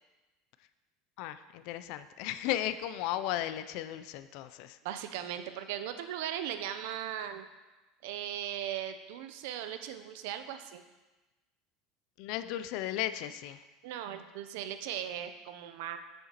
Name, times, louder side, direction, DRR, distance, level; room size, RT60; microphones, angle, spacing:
voice 1, 1.2-4.8 12.2-13.6, left 13 dB, 65° left, 12 dB, 0.3 m, -35 dB
voice 2, 4.8-7.4 8.0-10.8 13.8-16.0, right 10 dB, 75° right, 9 dB, 0.5 m, -38 dB
7.7 x 6.4 x 2.9 m, 1.1 s
supercardioid pair, 135°, 0 cm